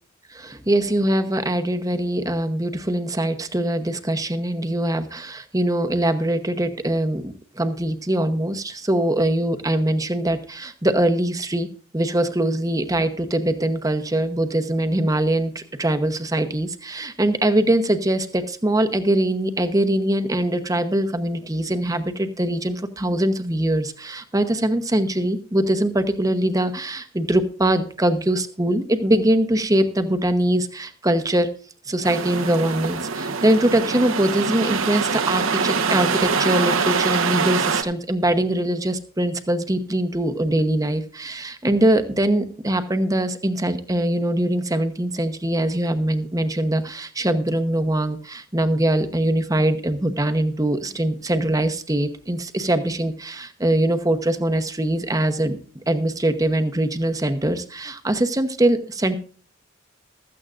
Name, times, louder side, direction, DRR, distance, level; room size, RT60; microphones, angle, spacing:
voice 1, 0.3-11.7 11.9-31.5 31.9-55.6 55.9-59.1, right 1 dB, 15° right, 8 dB, 0.9 m, -22 dB
sound 1, 32.0-37.8, right 5 dB, 75° right, 1.2 m, -24 dB
15.5 x 13.5 x 2.5 m, 0.40 s
head